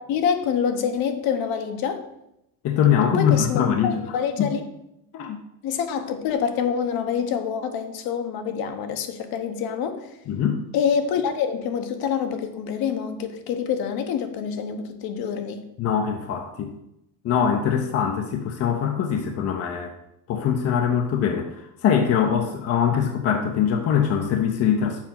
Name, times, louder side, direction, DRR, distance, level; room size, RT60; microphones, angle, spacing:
voice 1, 0.0-2.0 3.0-4.6 5.6-10.1 10.7-15.6, left 7 dB, 60° left, 7 dB, 1.0 m, -26 dB
voice 2, 2.6-4.0 4.4-4.5 5.1-5.4 10.3-10.6 15.8-16.7 17.2-19.9 20.3-25.0, left 8 dB, 35° left, 4 dB, 0.7 m, -22 dB
7.3 x 4.8 x 5.6 m, 0.82 s
cardioid pair, 165°, 41 cm